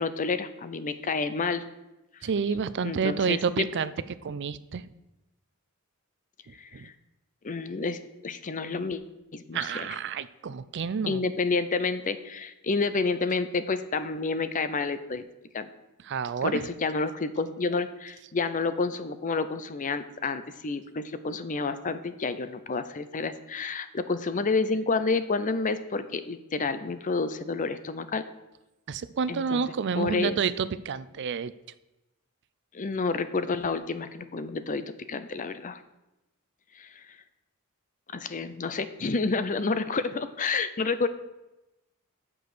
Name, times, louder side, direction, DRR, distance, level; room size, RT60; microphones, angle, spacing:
voice 1, 0.0-1.7 2.2-2.3 2.8-3.7 6.5-6.9 7.4-9.0 9.3-10.0 11.1-15.2 15.5-15.7 16.4-28.2 29.3-29.6 29.9-30.4 32.7-35.8 36.8-37.0 38.1-41.1, left 4 dB, 35° left, 12 dB, 0.6 m, -29 dB
voice 2, 2.2-3.9 4.2-4.9 6.5-6.9 9.5-11.2 16.0-16.7 28.9-31.5, right 6 dB, 55° right, 15 dB, 0.4 m, -29 dB
7.5 x 6.2 x 6.7 m, 0.97 s
head